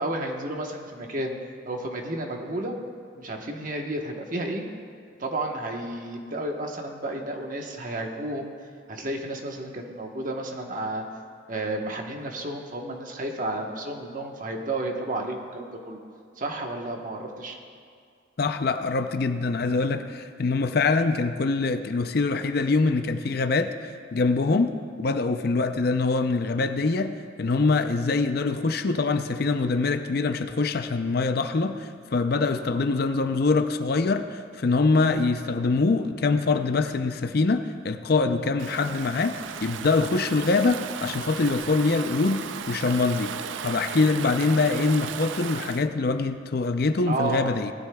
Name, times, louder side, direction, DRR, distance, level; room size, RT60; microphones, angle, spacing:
voice 1, 0.0-1.3 1.7-2.7 3.2-4.6 5.2-8.5 8.9-11.0 11.5-16.0 16.4-17.6 47.0-47.5, right 1 dB, 45° right, 2 dB, 1.1 m, -31 dB
voice 2, 18.4-23.7 24.1-24.7 25.0-27.1 27.4-43.4 43.6-47.7, left 3 dB, 50° left, 8 dB, 0.5 m, -24 dB
Stream / Ocean, 38.6-45.9, right 8 dB, 75° right, 0.4 m, -36 dB
18.5 x 12.5 x 2.3 m, 2.2 s
head